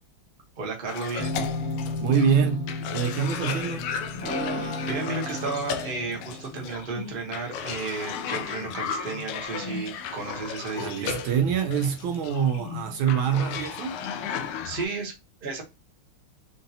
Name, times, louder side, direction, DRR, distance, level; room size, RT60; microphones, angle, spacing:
voice 1, 0.6-1.5 4.6-11.2 14.2-15.1 15.4-15.6, right 4 dB, 35° right, 0.9 m, -33 dB
Cough, 0.9-14.8, left 7 dB, 80° left, 1.5 m, -35 dB
sound 1, 1.2-6.5, left 2 dB, 5° left, 0.9 m, -33 dB
voice 2, 2.0-3.9 10.8-14.0, right 7 dB, 75° right, 1.3 m, -25 dB
5.3 x 2.6 x 2.7 m
omnidirectional pair, 2.4 m